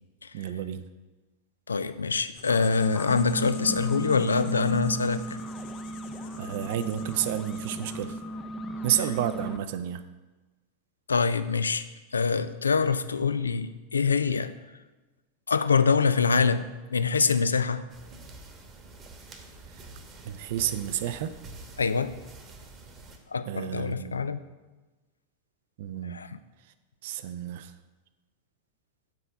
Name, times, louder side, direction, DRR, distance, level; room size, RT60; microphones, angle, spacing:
voice 1, 0.3-0.9 6.4-8.2 8.8-10.0 19.7-19.9 20.2-21.3 23.5-24.3 25.8-26.2 27.0-27.7, right 11 dB, 50° right, 11 dB, 0.4 m, -31 dB
voice 2, 1.7-5.4 11.1-11.9 12.1-14.5 15.5-17.8 21.8-22.2 23.3-24.4 26.1-26.3, left 5 dB, 75° left, 13 dB, 0.3 m, -25 dB
Writing, 2.3-8.3, left 7 dB, 50° left, 0.7 m, -50 dB
sound 1, 2.4-9.6, right 1 dB, 15° left, 0.6 m, -35 dB
sound 2, 17.9-23.2, right 2 dB, 25° right, 1.0 m, -47 dB
6.0 x 4.4 x 6.5 m, 1.2 s
figure-of-eight pair, 90°, 0 cm